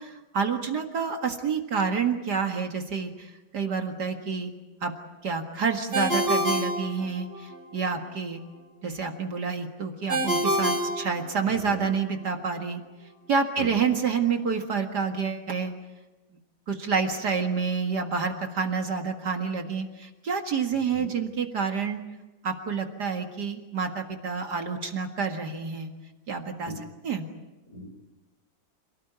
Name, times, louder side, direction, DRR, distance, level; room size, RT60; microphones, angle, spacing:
voice 1, 0.0-4.5 4.8-4.9 5.2-8.4 8.8-12.8 13.3-15.7 16.7-22.0 22.4-25.9 26.3-26.7 27.0-27.3, right 5 dB, 55° right, 4 dB, 2.4 m, -28 dB
Ringtone, 5.9-7.6 10.1-11.8, right 1 dB, 35° right, 3.8 m, -27 dB
voice 2, 11.4-11.8 13.6-13.8 20.9-21.1 26.7-26.8 27.7-27.9, left 1 dB, 40° left, 5 dB, 4.7 m, -39 dB
27.5 x 17.5 x 9.4 m, 1.1 s
omnidirectional pair, 2.1 m